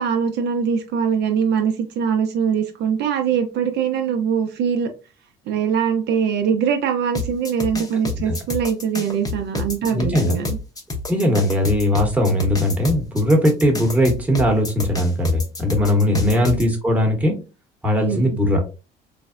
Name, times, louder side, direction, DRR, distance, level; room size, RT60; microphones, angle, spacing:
voice 1, 0.0-4.9 5.5-10.6 16.1-16.4 18.0-18.4, right 7 dB, 65° right, 5 dB, 0.5 m, -22 dB
sound 1, 7.1-16.6, left 3 dB, 20° left, 0.6 m, -28 dB
voice 2, 9.9-10.4 11.1-17.4 17.8-18.6, left 1 dB, 10° right, 0 dB, 0.9 m, -19 dB
3.2 x 2.0 x 2.4 m, 0.30 s
cardioid pair, 110°, 19 cm